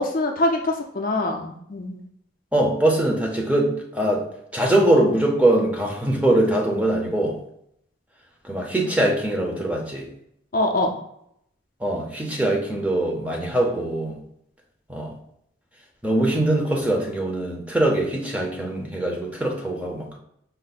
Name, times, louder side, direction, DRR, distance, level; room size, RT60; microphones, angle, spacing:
voice 1, 0.0-2.0 10.5-10.9, left 1 dB, 40° left, 3 dB, 0.4 m, -24 dB
voice 2, 2.5-4.2 4.5-7.4 8.4-10.1 11.8-14.2 14.9-15.1 16.0-20.2, right 1 dB, 5° right, -1 dB, 0.6 m, -22 dB
5.3 x 2.0 x 4.0 m, 0.73 s
head